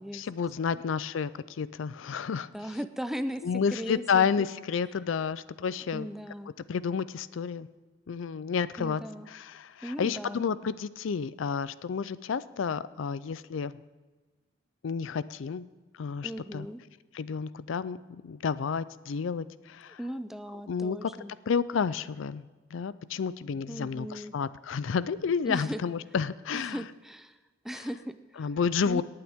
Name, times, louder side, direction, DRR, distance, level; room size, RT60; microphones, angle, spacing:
voice 1, 0.1-2.5 3.4-6.1 6.7-7.7 8.1-9.0 9.3-13.7 14.8-15.7 16.0-16.7 17.1-20.0 20.7-21.1 21.5-22.5 22.7-26.8 28.4-29.0, left 6 dB, 75° left, 17 dB, 0.4 m, -30 dB
voice 2, 2.5-4.5 5.7-6.5 8.8-9.3 9.8-10.4 16.2-16.8 19.9-21.3 23.7-24.3 25.4-25.8 26.5-27.4 27.6-28.5 28.9-29.0, equal, ahead, 10 dB, 0.4 m, -38 dB
18.0 x 8.8 x 3.6 m, 1.3 s
head